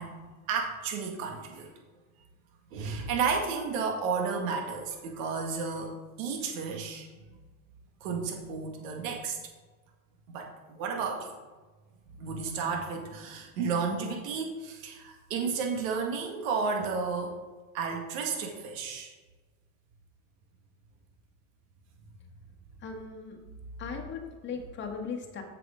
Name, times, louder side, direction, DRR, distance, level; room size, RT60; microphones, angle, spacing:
voice 1, 0.0-1.7 2.7-7.1 8.0-9.4 10.3-11.3 12.2-17.4 17.7-19.1, right 5 dB, 65° right, 2 dB, 2.0 m, -32 dB
voice 2, 22.8-23.4 23.8-25.4, left 5 dB, 25° left, 3 dB, 1.4 m, -38 dB
7.7 x 6.9 x 3.8 m, 1.3 s
hypercardioid pair, 115°, 43 cm